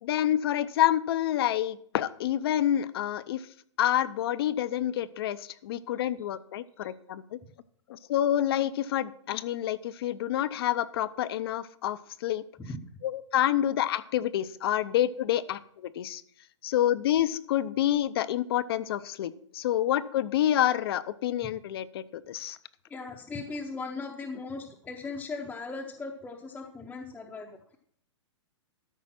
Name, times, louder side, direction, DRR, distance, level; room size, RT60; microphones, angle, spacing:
voice 1, 0.0-3.4 3.8-7.4 7.9-12.4 13.0-16.2 16.6-22.6, left 12 dB, 50° left, 14 dB, 0.6 m, -28 dB
voice 2, 22.9-27.8, left 3 dB, 10° left, -2 dB, 0.8 m, -38 dB
13.0 x 5.2 x 5.9 m, 0.63 s
hypercardioid pair, 145°, 16 cm